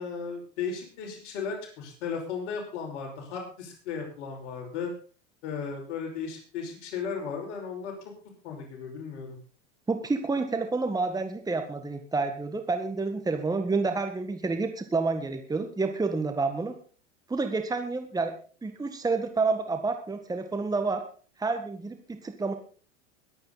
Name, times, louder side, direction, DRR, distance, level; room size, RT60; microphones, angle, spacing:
voice 1, 0.0-4.9 5.4-7.9 8.4-9.4, left 6 dB, 70° left, 1 dB, 5.5 m, -35 dB
voice 2, 9.9-16.7 17.3-18.3 18.6-21.0 21.4-22.5, right 3 dB, 10° right, 6 dB, 1.7 m, -29 dB
22.0 x 8.8 x 4.0 m, 0.40 s
hypercardioid pair, 105°, 36 cm